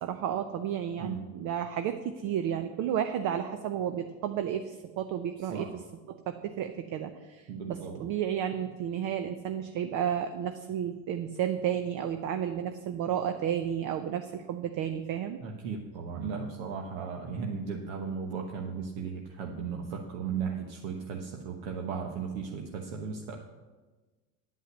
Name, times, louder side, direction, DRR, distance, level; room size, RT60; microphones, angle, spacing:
voice 1, 0.0-5.7 6.1-7.4 7.7-15.4, right 9 dB, 45° right, 7 dB, 0.7 m, -32 dB
voice 2, 5.4-5.7 7.5-8.0 15.4-23.4, right 6 dB, 65° right, 2 dB, 1.2 m, -36 dB
9.8 x 5.6 x 7.9 m, 1.3 s
hypercardioid pair, 100°, 44 cm